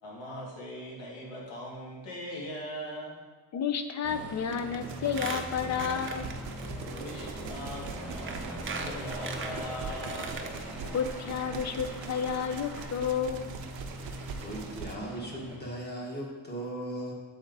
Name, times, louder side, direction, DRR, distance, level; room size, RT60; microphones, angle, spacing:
voice 1, 0.0-3.2 7.0-10.5, equal, 75° left, -3 dB, 1.9 m, -40 dB
voice 2, 3.5-6.3 10.8-13.5, left 7 dB, 40° left, 9 dB, 0.5 m, -31 dB
Aircraft, 4.0-15.6, equal, 5° right, 1.1 m, -41 dB
Squeak, 4.5-4.8 5.1-6.7 7.0-7.1 7.8-7.9 8.3-10.6 11.0-11.1 11.3-11.4, right 5 dB, 30° right, 0.5 m, -39 dB
sound 1, 4.8-15.0, right 6 dB, 90° right, 0.7 m, -43 dB
voice 3, 14.4-17.1, right 1 dB, 20° left, -2 dB, 1.4 m, -37 dB
7.7 x 4.3 x 3.9 m, 1.3 s
cardioid pair, 140°, 44 cm